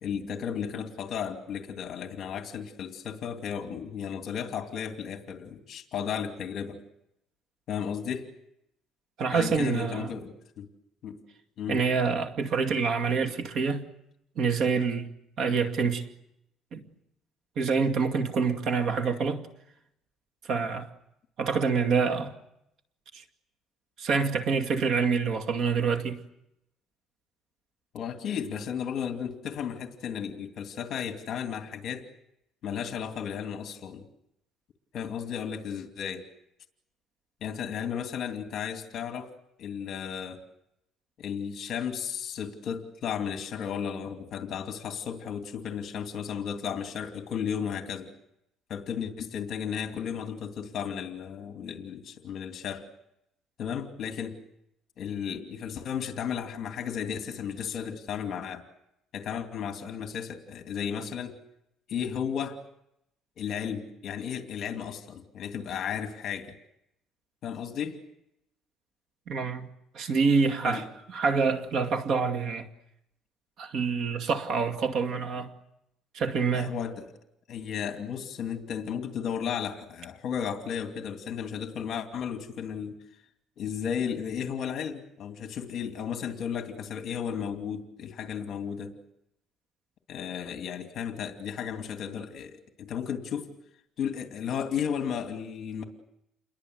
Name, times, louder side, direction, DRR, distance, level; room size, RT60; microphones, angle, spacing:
voice 1, 0.0-6.8 7.7-8.3 9.3-10.7 11.0-11.2 11.6-11.9 27.9-32.1 32.6-34.1 34.9-36.3 37.4-39.3 39.6-40.4 41.2-48.1 48.7-52.9 53.6-54.4 55.0-58.6 59.1-61.3 61.9-62.6 63.4-66.5 67.4-68.0 70.6-70.8 76.5-77.1 77.5-83.0 83.6-88.9 90.1-93.5 94.0-95.8, left 8 dB, 45° left, 2.7 m, -34 dB
voice 2, 9.2-10.1 11.7-13.9 14.4-15.1 15.4-16.1 16.7-16.8 17.6-19.5 20.5-20.9 21.4-22.3 23.1-23.2 24.0-26.2 69.3-69.7 69.9-72.7 73.6-75.5 76.1-76.7, right 5 dB, 50° right, 2.3 m, -26 dB
29.5 x 22.5 x 8.0 m
cardioid pair, 160°, 0 cm